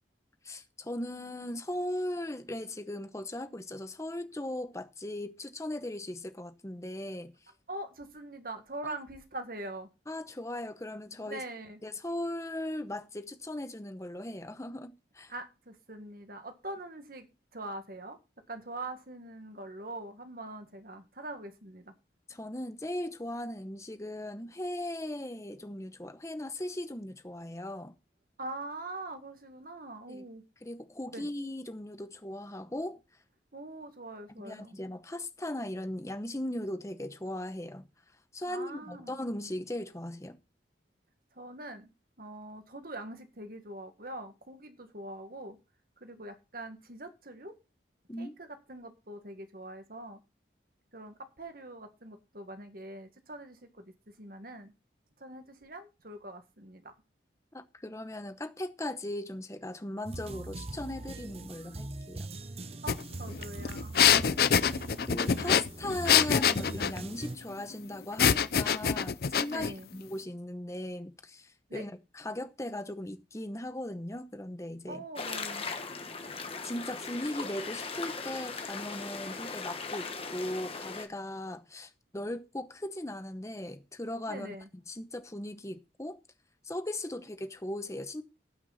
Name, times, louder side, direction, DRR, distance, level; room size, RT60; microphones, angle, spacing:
voice 1, 0.4-7.3 8.8-9.0 10.1-11.4 11.8-15.3 22.3-27.9 30.1-30.3 30.6-33.0 34.4-37.9 38.3-40.4 48.1-48.3 57.5-62.3 64.1-75.0 76.6-84.6 84.9-86.2 86.6-88.2, left 1 dB, 15° left, 0.9 m, -38 dB
voice 2, 7.7-9.9 11.3-11.8 15.3-17.3 17.5-18.2 18.5-21.9 28.4-30.4 31.1-31.2 33.5-34.8 38.4-39.1 41.4-41.9 42.2-45.6 46.0-47.5 48.2-50.2 50.9-53.9 54.2-54.7 55.2-56.9 62.8-64.0 69.4-69.9 71.7-71.9 74.9-75.7 84.3-84.7 87.1-87.2, right 2 dB, 55° right, 1.8 m, -43 dB
sound 1, 60.0-67.4, right 2 dB, 35° right, 0.8 m, -42 dB
sound 2, 62.9-63.0 63.3-67.0 68.2-69.7, left 8 dB, 55° left, 0.5 m, -25 dB
sound 3, 75.2-81.1, left 4 dB, 30° left, 1.3 m, -39 dB
17.5 x 6.1 x 4.1 m
head